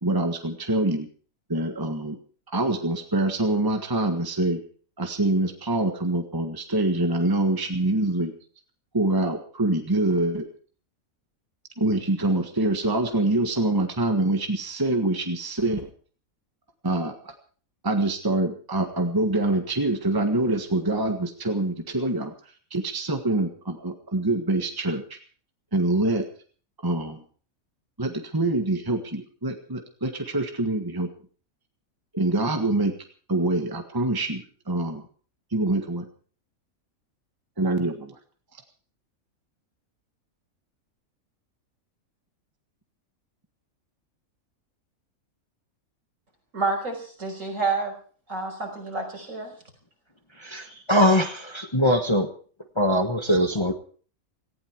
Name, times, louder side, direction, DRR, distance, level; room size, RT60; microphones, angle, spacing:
voice 1, 0.0-1.1 1.5-2.2 2.5-4.6 5.0-8.3 8.9-10.4 11.8-15.9 16.8-17.3 17.8-22.3 22.7-25.2 25.7-26.2 26.8-27.2 28.0-31.1 32.1-32.9 33.3-35.1 35.5-36.1 37.6-38.2, right 2 dB, 15° right, 5 dB, 1.5 m, -25 dB
voice 2, 46.5-47.9 48.3-49.5 50.6-50.8, right 3 dB, 65° right, 2 dB, 5.5 m, -29 dB
voice 3, 50.4-52.3 52.7-53.7, equal, 20° left, 5 dB, 1.3 m, -22 dB
18.5 x 15.5 x 4.6 m, 0.43 s
omnidirectional pair, 1.5 m